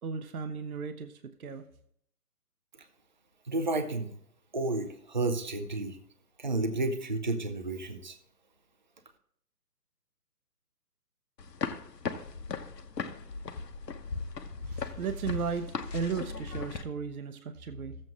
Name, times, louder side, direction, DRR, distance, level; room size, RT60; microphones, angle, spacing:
voice 1, 0.0-1.7 14.7-18.0, right 5 dB, 60° right, 9 dB, 0.9 m, -35 dB
voice 2, 3.5-4.1 4.5-6.0 6.4-8.2, right 2 dB, 30° right, 7 dB, 0.5 m, -31 dB
sound 1, 11.4-16.8, left 4 dB, 75° left, 1.2 m, -37 dB
14.0 x 7.7 x 3.6 m, 0.68 s
hypercardioid pair, 155°, 49 cm